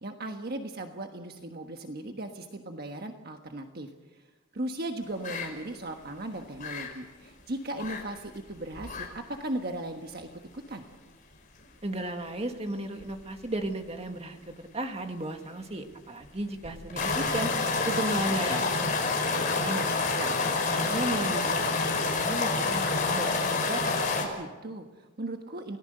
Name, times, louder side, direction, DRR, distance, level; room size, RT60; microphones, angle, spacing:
voice 1, 0.0-4.2 4.5-10.8 17.8-17.9 18.2-18.9 24.2-25.8, right 1 dB, 50° right, 4 dB, 1.4 m, -37 dB
sound 1, 5.2-5.5 5.8-6.0 6.4-6.9 7.7-8.0 8.3-8.4 8.7-9.1 9.4-9.5 10.1-10.2 13.0-13.3 13.6-13.7 16.6-24.2, left 3 dB, 40° left, 5.4 m, -28 dB
voice 2, 11.8-17.5 17.9-23.9, right 1 dB, 30° right, 5 dB, 1.9 m, -35 dB
29.0 x 18.5 x 6.7 m, 1.2 s
head